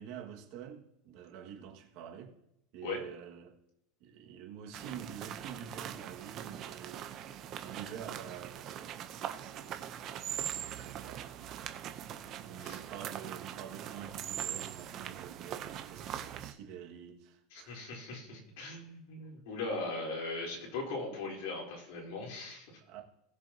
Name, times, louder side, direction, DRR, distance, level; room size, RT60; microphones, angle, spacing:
voice 1, 0.0-2.3 2.7-3.6 4.0-17.9 22.8-23.0, right 8 dB, 55° right, 1.9 m, -48 dB
sound 1, 4.7-16.5, right 10 dB, 35° right, 0.8 m, -42 dB
voice 2, 17.5-22.7, left 3 dB, 75° left, 4.0 m, -39 dB
19.0 x 7.0 x 2.9 m
supercardioid pair, 155°, 0 cm